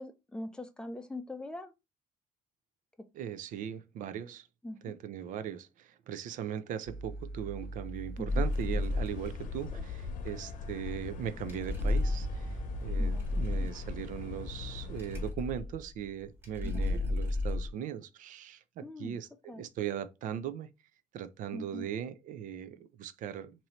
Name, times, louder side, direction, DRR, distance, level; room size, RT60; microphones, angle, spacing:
voice 1, 0.0-1.7 3.0-3.1 4.6-4.9 8.2-8.4 13.0-13.7 16.6-16.9 18.8-19.2 19.5-19.6 21.5-21.9, left 1 dB, 5° left, 0.5 m, -42 dB
voice 2, 3.1-4.5 4.8-19.3 19.6-20.7 21.1-23.7, right 9 dB, 70° right, 0.5 m, -39 dB
sound 1, 6.9-17.7, left 2 dB, 15° right, 1.5 m, -34 dB
sound 2, 8.3-15.3, left 5 dB, 75° left, 0.8 m, -42 dB
3.0 x 2.7 x 4.2 m
cardioid pair, 125°, 14 cm